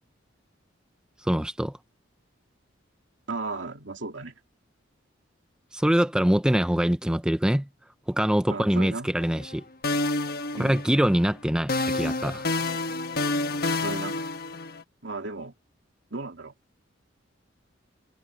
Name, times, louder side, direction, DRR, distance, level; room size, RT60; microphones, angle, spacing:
voice 1, 1.2-1.8 5.7-7.7 8.1-9.6 10.6-12.5, equal, 5° right, 0.5 m, -24 dB
voice 2, 3.3-4.3 8.5-9.1 10.5-10.8 13.4-14.2 15.0-15.5 16.1-16.5, right 3 dB, 70° right, 3.0 m, -35 dB
sound 1, 9.2-9.6 9.8-11.3 11.7-14.8, left 2 dB, 55° left, 1.3 m, -29 dB
head